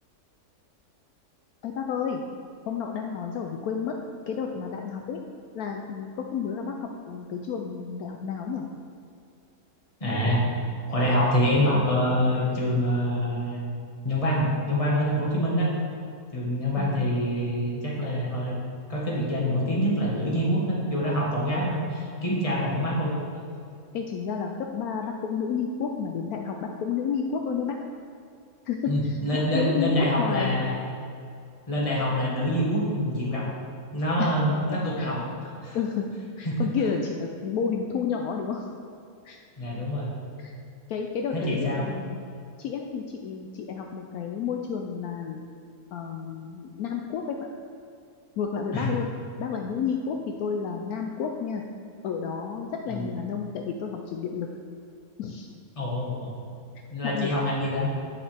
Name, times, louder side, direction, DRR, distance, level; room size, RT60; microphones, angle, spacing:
voice 1, 1.6-2.2 2.7-3.9 4.3-5.2 5.5-8.7 16.8-17.1 23.9-27.8 28.6-30.6 34.2-34.3 34.7-35.1 35.7-36.1 36.4-38.7 39.2-39.4 40.4-40.5 40.9-42.2 42.6-45.4 45.9-47.4 48.4-49.1 49.4-51.6 52.0-54.5 55.2-55.5 57.0-57.3, left 6 dB, 75° left, 2 dB, 1.0 m, -31 dB
voice 2, 10.0-10.4 10.9-13.7 14.0-15.7 16.3-18.6 18.9-23.2 28.9-30.7 31.7-33.5 33.9-35.2 35.6-35.8 36.4-36.7 39.6-40.1 41.3-41.9 48.7-48.9 52.9-53.0 55.8-56.3 56.9-57.9, equal, 25° left, -4 dB, 1.4 m, -25 dB
8.5 x 6.5 x 3.4 m, 2.4 s
omnidirectional pair, 1.7 m